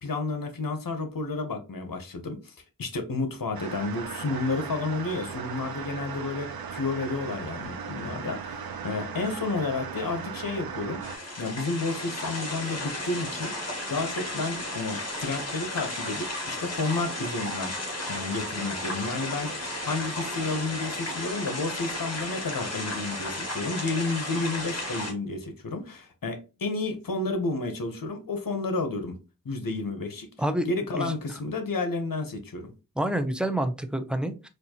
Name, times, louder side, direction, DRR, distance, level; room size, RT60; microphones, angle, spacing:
voice 1, 0.0-11.0 11.4-13.5 13.9-17.7 18.1-19.5 19.8-29.2 29.4-30.3 30.7-32.7, left 3 dB, 65° left, 1.0 m, -31 dB
sound 1, 3.5-11.2, right 6 dB, 75° right, 0.6 m, -37 dB
sound 2, 11.0-25.1, left 1 dB, 45° left, 1.5 m, -34 dB
voice 2, 33.0-34.5, right 1 dB, ahead, 0.5 m, -28 dB
4.3 x 2.5 x 2.9 m
cardioid pair, 50°, 36 cm